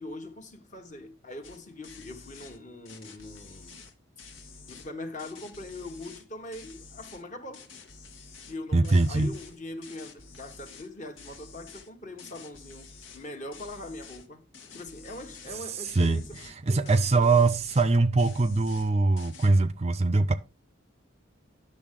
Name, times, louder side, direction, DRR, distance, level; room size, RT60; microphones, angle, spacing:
voice 1, 0.0-3.8 4.7-7.7 8.5-14.4 14.7-16.4 16.7-17.4, left 1 dB, 35° left, 1.2 m, -42 dB
sound 1, 1.4-1.6 1.8-2.6 2.9-4.9 5.2-6.2 6.5-7.2 7.5-8.6 8.8-10.9 11.2-11.9 12.2-13.3 13.5-14.3 14.5-15.6 15.9-16.5 16.9-17.9 18.2-18.9 19.2-19.6, left 4 dB, 75° left, 1.4 m, -49 dB
voice 2, 8.7-9.3 15.9-16.2 16.7-20.3, right 3 dB, 30° right, 0.4 m, -22 dB
10.5 x 6.6 x 3.7 m
head